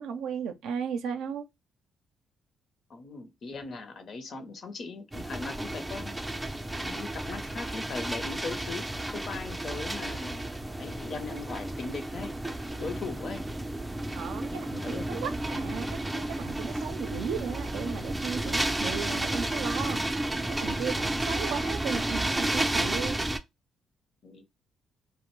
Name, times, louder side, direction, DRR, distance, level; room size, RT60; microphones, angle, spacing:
voice 1, 0.0-1.5 14.1-20.0 20.5-23.2, right 7 dB, 85° right, 0.4 m, -35 dB
voice 2, 2.9-6.2 6.7-8.9 9.1-10.5 10.8-12.4 12.7-13.4 14.8-15.3 24.2-24.4, left 4 dB, 55° left, 0.7 m, -39 dB
sound 1, 5.1-23.4, right 1 dB, 10° right, 0.4 m, -32 dB
2.5 x 2.0 x 3.0 m
cardioid pair, 90°, 0 cm